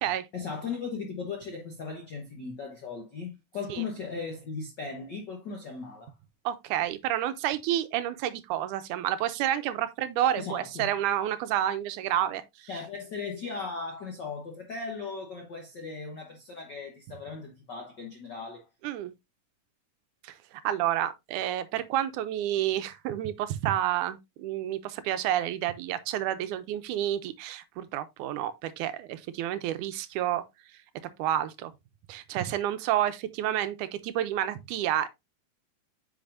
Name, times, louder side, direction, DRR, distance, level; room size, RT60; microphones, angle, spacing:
voice 1, 0.3-6.1 10.4-10.9 12.7-18.7, left 4 dB, 65° left, 1.0 m, -37 dB
voice 2, 6.5-12.7 18.8-19.1 20.2-30.4 31.2-31.7 32.1-35.1, right 12 dB, 80° right, 2.0 m, -29 dB
8.7 x 5.6 x 2.5 m
omnidirectional pair, 3.7 m